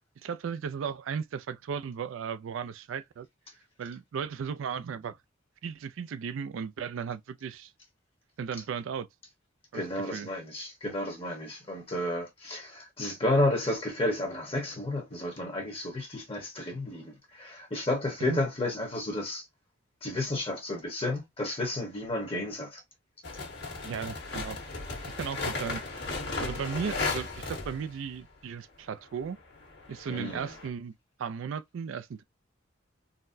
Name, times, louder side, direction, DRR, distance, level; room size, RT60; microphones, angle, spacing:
voice 1, 0.2-3.3 3.8-5.2 5.6-7.7 8.4-9.1 9.7-10.3 18.2-18.4 23.8-24.6 25.1-25.8 26.4-29.4 29.9-30.9 31.2-32.2, right 6 dB, 80° right, 0.3 m, -36 dB
voice 2, 9.7-19.4 20.0-22.8 30.1-30.5, left 1 dB, 30° left, 1.0 m, -32 dB
sound 1, 23.2-28.1 29.2-30.7, left 3 dB, 55° left, 1.4 m, -36 dB
3.9 x 2.1 x 2.5 m
head